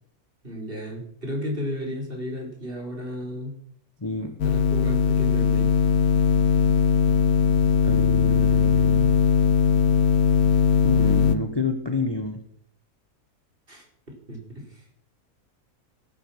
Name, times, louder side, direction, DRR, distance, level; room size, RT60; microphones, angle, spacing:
voice 1, 0.4-3.5 4.4-5.7 13.7-14.8, left 1 dB, 35° right, 0 dB, 5.3 m, -34 dB
voice 2, 4.0-4.4 7.8-9.1 10.8-12.4, left 3 dB, 20° left, 6 dB, 1.2 m, -29 dB
sound 1, 4.4-11.4, left 6 dB, 80° left, 1.5 m, -20 dB
18.0 x 9.8 x 7.4 m, 0.70 s
omnidirectional pair, 1.6 m